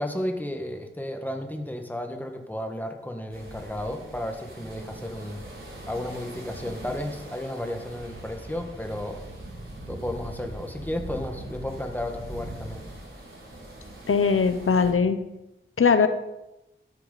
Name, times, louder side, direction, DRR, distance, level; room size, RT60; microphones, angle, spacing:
voice 1, 0.0-9.2 9.9-12.9, left 1 dB, 10° left, 4 dB, 1.7 m, -33 dB
sound 1, 3.3-14.9, right 1 dB, 75° right, 4.6 m, -41 dB
voice 2, 14.1-15.2 15.8-16.1, left 5 dB, 90° left, 10 dB, 0.8 m, -20 dB
13.0 x 13.0 x 4.2 m, 0.94 s
wide cardioid pair, 80°, 21 cm